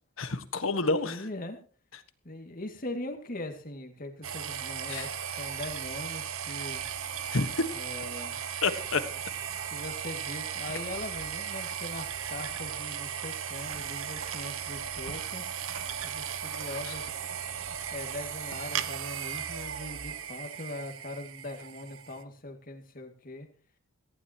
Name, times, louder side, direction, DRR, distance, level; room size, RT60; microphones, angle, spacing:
voice 1, 0.2-1.3 4.9-5.1 7.3-7.7 8.6-9.0, left 3 dB, 75° left, 10 dB, 1.5 m, -28 dB
voice 2, 0.8-1.6 2.2-6.8 7.7-8.4 9.7-15.4 16.0-17.2 17.9-23.5, left 1 dB, 40° left, 5 dB, 2.3 m, -41 dB
sound 1, 4.2-22.2, right 8 dB, 75° right, 1.0 m, -36 dB
18.0 x 15.5 x 3.0 m, 0.42 s
head